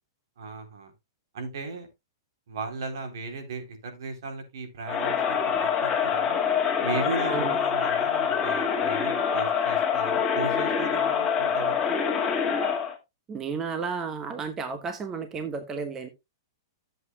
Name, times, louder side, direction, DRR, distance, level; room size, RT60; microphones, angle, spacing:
voice 1, 0.4-0.9 1.3-1.9 2.5-6.4 6.8-12.0, right 4 dB, 75° right, 5 dB, 3.5 m, -36 dB
Crowd, 4.9-13.0, left 7 dB, 15° left, 2.2 m, -25 dB
voice 2, 13.3-16.1, right 5 dB, 20° right, 8 dB, 1.1 m, -32 dB
13.0 x 7.9 x 2.3 m, 0.21 s
hypercardioid pair, 150°, 2 cm